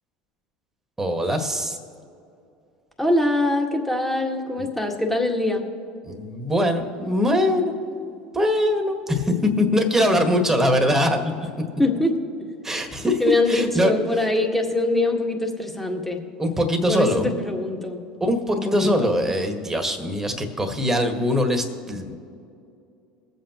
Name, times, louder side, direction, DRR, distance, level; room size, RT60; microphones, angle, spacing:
voice 1, 1.0-1.8 6.0-7.8 8.3-11.5 12.6-13.2 13.5-13.9 16.4-17.3 18.2-22.2, left 1 dB, 10° right, 4 dB, 1.7 m, -22 dB
voice 2, 3.0-5.7 11.8-12.2 13.2-16.2 16.9-18.0 18.7-19.1, left 2 dB, 5° left, 2 dB, 1.8 m, -23 dB
23.0 x 7.9 x 3.0 m, 2.5 s
hypercardioid pair, 80°, 3 cm